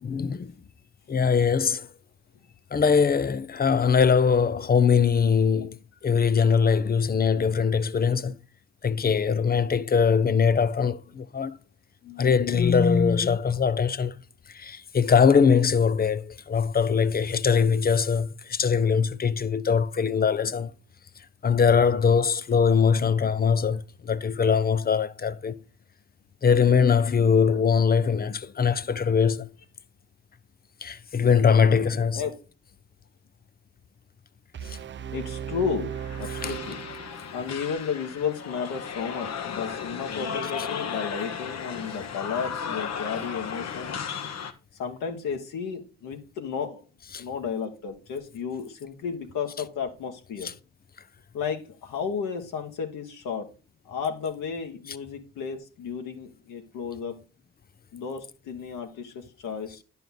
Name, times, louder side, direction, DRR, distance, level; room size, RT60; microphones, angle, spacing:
voice 1, 0.0-0.5 1.1-1.9 2.7-8.4 8.8-11.6 12.0-14.2 14.5-20.7 21.4-25.6 26.4-29.5 30.8-32.2 34.7-34.8 36.4-36.5 47.1-47.2 50.4-50.5, left 6 dB, 25° left, 0.7 m, -22 dB
sound 1, 34.5-37.6, right 8 dB, 35° right, 0.6 m, -36 dB
voice 2, 35.1-36.9 37.3-44.0 44.8-46.8 47.2-50.5 51.3-53.5 53.9-57.2 57.9-59.8, left 6 dB, 65° left, 1.8 m, -33 dB
sound 2, 35.9-44.5, left 7 dB, 50° left, 1.2 m, -35 dB
10.5 x 5.4 x 3.9 m
hypercardioid pair, 55°, 34 cm